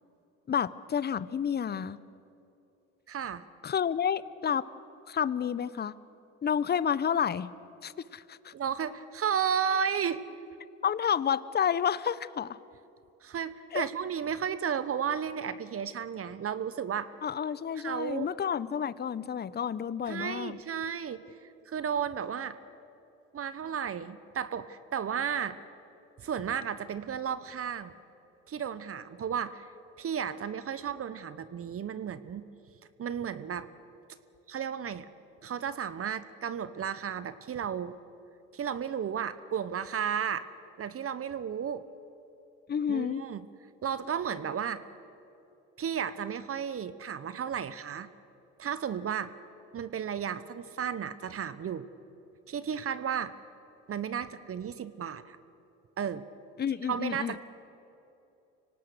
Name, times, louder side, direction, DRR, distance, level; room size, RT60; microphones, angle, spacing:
voice 1, 0.5-2.0 3.6-4.7 5.1-6.0 6.4-7.5 7.8-8.5 10.8-12.6 13.7-13.9 17.2-20.6 42.7-43.2 56.6-57.4, left 8 dB, 30° left, 18 dB, 0.8 m, -30 dB
voice 2, 3.1-3.4 8.5-10.2 13.2-17.1 17.8-18.3 20.1-21.2 21.7-22.6 23.3-25.6 26.2-27.9 28.5-29.7 30.0-32.5 33.0-33.7 34.5-35.1 35.4-38.0 38.5-40.5 40.8-41.8 42.9-43.5 43.8-44.8 45.8-48.1 48.6-49.3 49.7-51.9 52.5-53.3 53.9-55.4 56.0-56.2 56.9-57.4, right 8 dB, 40° right, 14 dB, 1.0 m, -33 dB
25.0 x 18.0 x 6.6 m, 2.9 s
hypercardioid pair, 70°, 36 cm